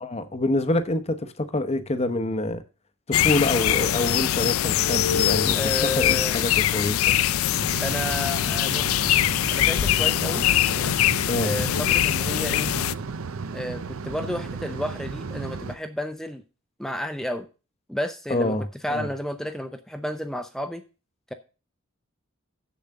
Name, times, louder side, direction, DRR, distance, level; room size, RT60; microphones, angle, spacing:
voice 1, 0.0-2.6 3.1-5.6 6.0-7.2 11.3-11.6 18.3-19.1, left 2 dB, 30° left, 0.8 m, -26 dB
sound 1, 3.1-12.9, left 12 dB, 75° left, 0.4 m, -23 dB
voice 2, 5.5-6.5 7.8-9.0 9.5-10.5 11.4-12.7 13.5-16.4 16.8-17.5 17.9-18.6 18.8-20.8, left 1 dB, ahead, 0.6 m, -31 dB
sound 2, 7.6-15.8, right 4 dB, 75° right, 0.6 m, -34 dB
7.2 x 7.1 x 6.5 m
head